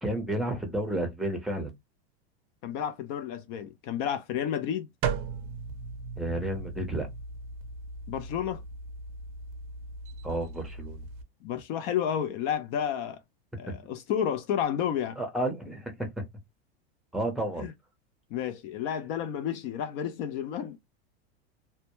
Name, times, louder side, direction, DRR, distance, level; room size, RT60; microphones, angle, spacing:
voice 1, 0.0-1.7 6.2-7.1 10.2-11.0 13.7-13.8 15.2-16.2 17.1-17.7, right 1 dB, ahead, 0.6 m, -31 dB
voice 2, 2.6-4.9 8.1-8.6 11.4-13.2 13.6-15.2 17.6-17.7 18.3-20.8, left 9 dB, 45° left, 0.4 m, -31 dB
sound 1, 5.0-11.2, right 5 dB, 45° right, 0.5 m, -37 dB
2.1 x 2.1 x 2.9 m
supercardioid pair, 130°, 32 cm